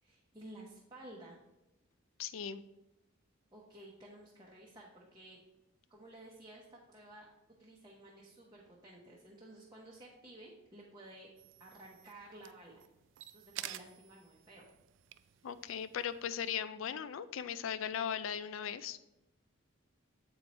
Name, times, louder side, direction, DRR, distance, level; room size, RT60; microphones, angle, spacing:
voice 1, 0.0-1.4 3.5-5.4 5.9-7.3 7.6-11.3 11.6-12.8 13.3-14.7, right 1 dB, 20° right, -4 dB, 0.8 m, -54 dB
voice 2, 2.2-2.6 15.4-19.0, left 8 dB, 70° left, 15 dB, 0.4 m, -38 dB
sound 1, 11.4-16.5, right 13 dB, 65° right, 0.3 m, -51 dB
7.9 x 4.5 x 4.1 m, 0.94 s
head